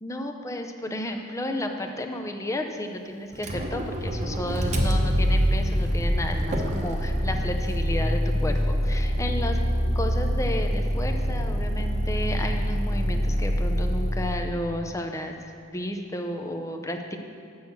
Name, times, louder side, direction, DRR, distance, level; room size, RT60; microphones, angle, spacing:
voice 1, 0.0-9.6 9.9-15.3 15.7-17.2, left 1 dB, 15° left, 4 dB, 0.6 m, -32 dB
Motor vehicle (road), 3.3-14.5, equal, 35° right, 0.9 m, -25 dB
7.9 x 6.3 x 7.0 m, 2.3 s
head